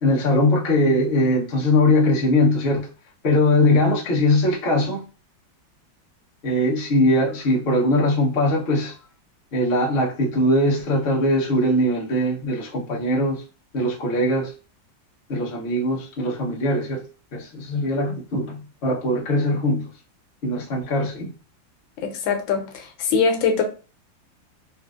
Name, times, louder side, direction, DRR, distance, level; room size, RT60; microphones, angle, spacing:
voice 1, 0.0-2.9 3.2-5.0 6.4-8.9 9.5-13.4 13.7-14.5 15.3-17.1 17.3-19.9 20.4-21.3, left 1 dB, 45° left, 0.9 m, -21 dB
voice 2, 22.0-23.6, left 5 dB, 85° left, 1.5 m, -22 dB
4.1 x 2.5 x 2.4 m
omnidirectional pair, 2.1 m